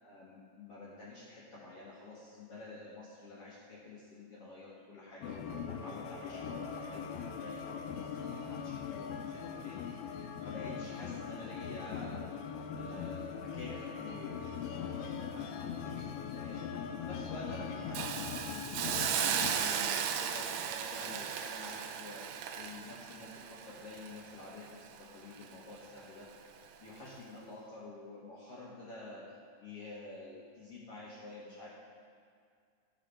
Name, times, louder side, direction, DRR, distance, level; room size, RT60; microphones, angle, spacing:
voice 1, 0.0-10.1 10.4-12.3 12.7-14.4 14.7-16.1 16.3-18.4 18.8-26.3 26.8-29.2 29.6-31.7, left 2 dB, 65° left, -6 dB, 1.5 m, -48 dB
sound 1, 5.2-19.5, left 7 dB, 85° left, 2.4 m, -41 dB
Hiss, 17.9-25.0 25.4-25.5, right 8 dB, 85° right, 2.7 m, -36 dB
12.5 x 5.1 x 6.1 m, 2.2 s
omnidirectional pair, 4.5 m